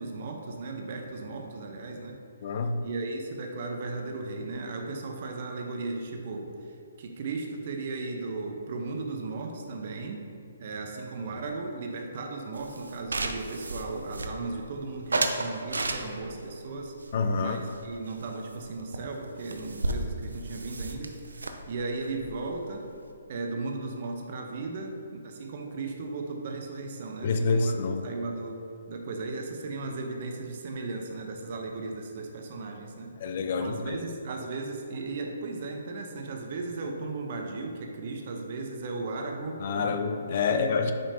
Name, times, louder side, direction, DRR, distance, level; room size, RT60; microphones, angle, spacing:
voice 1, 0.0-2.2 2.8-6.5 7.0-10.2 10.6-16.9 17.4-21.1 21.4-22.9 23.3-27.7 28.0-33.1 33.6-40.0 40.5-40.9, right 3 dB, 50° right, 3 dB, 0.8 m, -36 dB
voice 2, 2.4-2.8 17.1-17.6 27.2-28.1 33.2-34.0 39.6-40.9, left 4 dB, 50° left, 7 dB, 0.4 m, -27 dB
sound 1, 12.6-14.7 15.1-16.4 17.0-18.2 18.5-18.6 18.9-19.0 19.2-23.1, right 2 dB, 85° right, 0.5 m, -33 dB
6.9 x 5.4 x 2.8 m, 2.7 s
hypercardioid pair, 140°, 0 cm